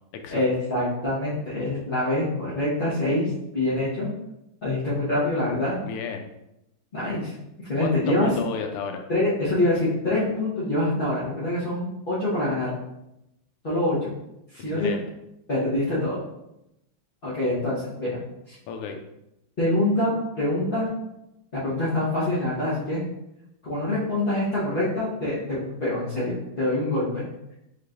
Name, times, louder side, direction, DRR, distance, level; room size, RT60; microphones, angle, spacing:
voice 1, 0.3-4.1 4.6-5.8 6.9-7.3 7.6-8.3 9.1-12.7 13.6-14.1 14.5-14.9 15.5-16.2 17.2-18.2 18.5-18.6 19.6-20.9 21.5-23.0 23.6-27.2, left 1 dB, 35° left, -11 dB, 0.9 m, -25 dB
voice 2, 5.9-6.3 7.8-9.1 14.7-15.0 18.7-19.0, left 6 dB, 90° left, 5 dB, 1.5 m, -32 dB
5.6 x 3.2 x 2.5 m, 0.86 s
omnidirectional pair, 2.4 m